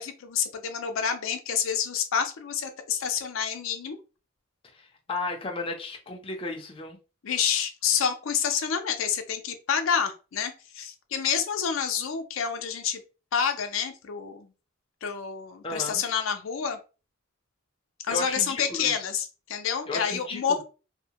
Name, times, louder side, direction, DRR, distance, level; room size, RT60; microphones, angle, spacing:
voice 1, 0.0-4.0 7.2-13.0 13.3-14.5 15.0-16.8 18.1-20.6, left 7 dB, 90° left, 0.5 m, -28 dB
voice 2, 4.7-7.0 15.6-16.0 18.1-18.9 19.9-20.6, left 3 dB, 25° left, 0.5 m, -34 dB
2.7 x 2.1 x 2.8 m
head